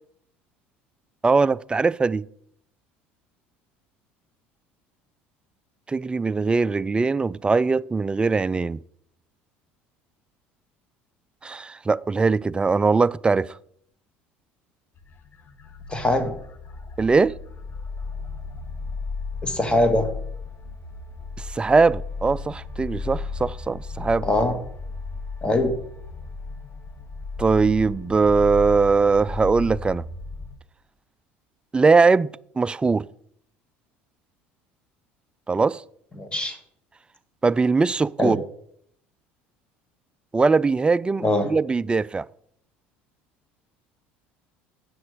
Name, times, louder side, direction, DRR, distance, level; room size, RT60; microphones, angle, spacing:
voice 1, 1.2-2.3 5.9-8.8 11.4-13.6 17.0-17.3 21.4-24.3 27.4-30.0 31.7-33.1 35.5-35.8 37.4-38.4 40.3-42.3, right 4 dB, 15° right, 0.3 m, -21 dB
sound 1, 15.0-30.6, left 4 dB, 40° left, 1.3 m, -35 dB
voice 2, 15.9-16.3 19.4-20.1 24.2-24.6 25.4-25.7 36.2-36.6 38.2-38.4 41.2-41.5, left 1 dB, 20° left, 1.9 m, -22 dB
9.8 x 6.1 x 5.0 m
hypercardioid pair, 80°, 6 cm